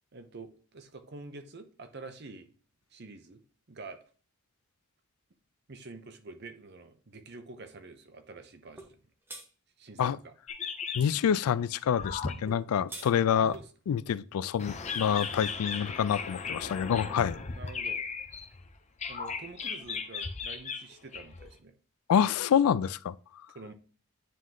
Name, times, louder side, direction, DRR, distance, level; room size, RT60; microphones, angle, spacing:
voice 1, 0.1-2.5 2.9-3.4 3.7-4.0 5.7-9.0 9.8-10.3 13.4-13.7 16.6-16.7 17.5-18.0 19.1-21.8 22.6-22.7 23.5-23.7, right 3 dB, 45° right, 0.7 m, -47 dB
sound 1, 8.8-8.9 9.3-9.5 12.5-13.1, right 1 dB, 10° right, 0.7 m, -43 dB
sound 2, 10.5-11.3 12.0-12.5 13.5-13.6 14.6-18.7 19.0-21.5, left 5 dB, 30° left, 0.6 m, -36 dB
voice 2, 10.9-13.5 13.9-17.4 22.1-23.1, left 8 dB, 80° left, 0.3 m, -27 dB
9.3 x 3.1 x 3.8 m
head